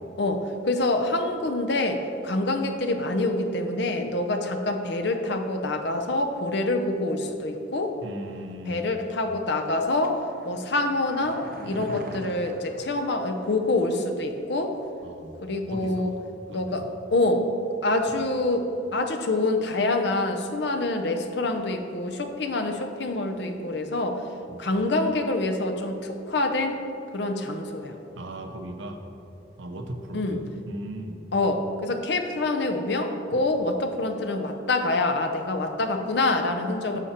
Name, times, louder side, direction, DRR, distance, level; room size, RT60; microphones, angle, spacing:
voice 1, 0.2-8.0 8.7-14.7 15.4-16.2 16.5-16.9 17.1-17.5 17.8-24.2 24.6-26.8 27.1-27.9 30.1-30.4 31.3-37.0, left 2 dB, 60° left, 5 dB, 0.7 m, -26 dB
voice 2, 8.0-8.9 15.0-16.9 18.2-18.3 24.5-24.7 28.2-29.0 29.6-31.2 33.3-33.4, right 1 dB, 70° right, 4 dB, 0.9 m, -38 dB
sound 1, 10.0-13.7 14.0-14.1, right 1 dB, 45° right, 0.6 m, -41 dB
9.8 x 6.9 x 4.4 m, 2.8 s
head